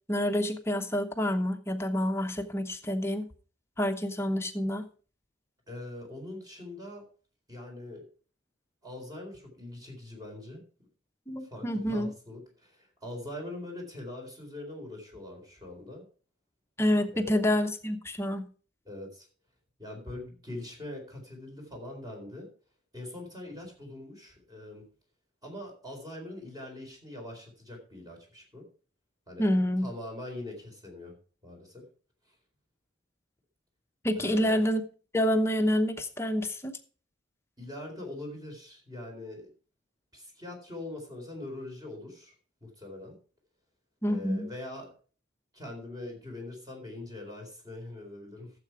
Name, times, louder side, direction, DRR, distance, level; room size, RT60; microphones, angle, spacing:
voice 1, 0.1-3.3 3.8-4.8 11.3-12.1 16.8-18.5 29.4-29.9 34.0-34.8 35.1-36.8 44.0-44.5, equal, 15° left, 7 dB, 0.9 m, -28 dB
voice 2, 5.7-7.0 7.5-8.0 8.8-10.6 11.4-16.1 17.1-17.4 18.8-19.3 19.8-22.5 22.9-24.8 25.4-28.6 29.3-29.5 29.8-31.1 31.4-31.8 34.2-34.6 37.6-39.5 40.1-42.3 42.6-43.1 44.1-44.9 45.5-48.5, left 1 dB, 20° right, 1 dB, 4.2 m, -42 dB
13.0 x 7.7 x 4.8 m, 0.39 s
head